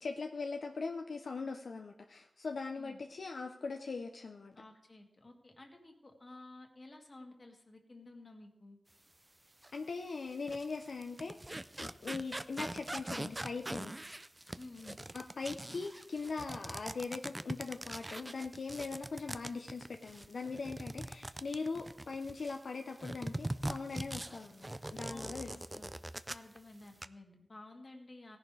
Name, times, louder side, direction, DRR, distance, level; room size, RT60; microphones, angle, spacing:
voice 1, 0.0-4.5 9.7-13.9 15.1-25.8, left 4 dB, 75° left, 4 dB, 0.7 m, -41 dB
voice 2, 4.6-8.8 14.6-15.0 24.8-25.9 26.3-28.4, left 2 dB, 40° left, 2 dB, 2.1 m, -53 dB
sound 1, 9.6-9.8 10.3-22.6 23.0-26.6 26.8-27.1, right 1 dB, 20° right, 0.5 m, -42 dB
17.0 x 11.0 x 3.4 m, 0.81 s
wide cardioid pair, 80°, 0 cm